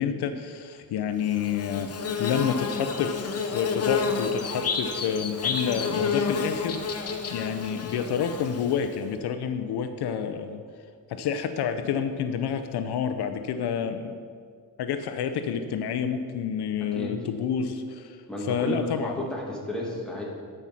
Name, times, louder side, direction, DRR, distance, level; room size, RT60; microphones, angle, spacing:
voice 1, 0.0-10.6 11.1-14.1 14.8-18.1 18.5-19.1, left 7 dB, 80° left, 8 dB, 0.7 m, -29 dB
Bird / Buzz, 1.2-8.9, left 5 dB, 40° left, 0.9 m, -30 dB
voice 2, 16.8-17.2 18.3-20.2, equal, ahead, -3 dB, 2.1 m, -32 dB
12.0 x 5.6 x 5.8 m, 2.1 s
cardioid pair, 125°, 39 cm